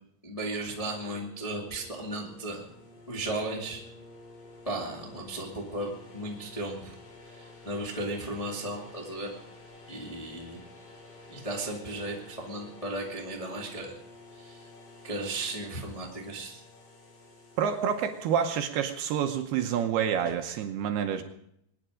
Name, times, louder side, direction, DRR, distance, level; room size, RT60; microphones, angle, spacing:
voice 1, 0.2-2.6 3.1-3.8 4.6-6.9 7.4-9.3 9.9-10.6 11.3-14.0 14.4-14.6 15.0-16.6, right 1 dB, 20° left, -2 dB, 0.8 m, -35 dB
sound 1, 0.8-18.7, left 2 dB, 75° left, 6.5 m, -51 dB
voice 2, 17.6-21.2, right 8 dB, 75° right, 6 dB, 2.6 m, -28 dB
23.0 x 10.0 x 5.1 m, 0.74 s
omnidirectional pair, 5.2 m